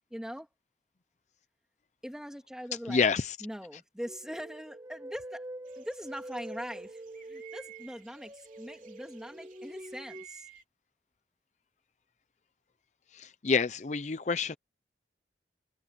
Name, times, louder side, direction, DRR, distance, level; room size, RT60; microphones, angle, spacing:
voice 1, 0.1-0.5 2.0-3.0 3.4-5.4 5.8-10.5, equal, 5° right, 2.5 m, -42 dB
voice 2, 2.9-3.4 13.1-14.6, left 5 dB, 40° left, 0.5 m, -28 dB
sound 1, 4.1-10.3, right 1 dB, 25° right, 1.5 m, -46 dB
sound 2, 5.7-10.6, right 13 dB, 45° right, 3.7 m, -55 dB
head